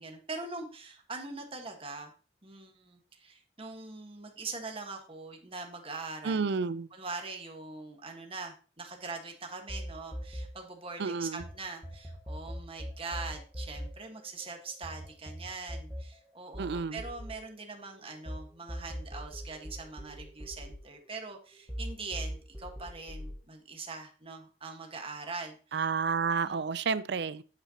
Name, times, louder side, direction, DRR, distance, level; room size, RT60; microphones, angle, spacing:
voice 1, 0.0-2.1 2.4-6.5 6.9-25.8 26.4-26.7, right 3 dB, 30° right, 1.5 m, -42 dB
voice 2, 6.2-6.9 11.0-11.4 16.6-17.0 25.7-27.4, right 5 dB, 65° right, 0.5 m, -30 dB
sound 1, 9.7-11.5 11.8-18.4 18.7-21.4 21.7-23.3, equal, 5° right, 1.3 m, -41 dB
8.9 x 8.4 x 2.9 m
head